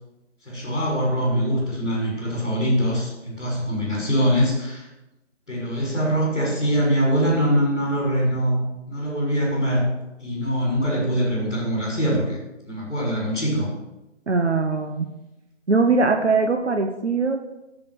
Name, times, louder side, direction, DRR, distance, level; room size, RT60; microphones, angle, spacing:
voice 1, 0.4-4.9 5.5-9.9 10.2-12.4 12.6-13.7, equal, ahead, -22 dB, 3.7 m, -23 dB
voice 2, 14.3-15.1 15.7-17.4, right 4 dB, 65° right, 5 dB, 1.1 m, -21 dB
7.6 x 7.1 x 6.4 m, 0.97 s
figure-of-eight pair, 180°, 36 cm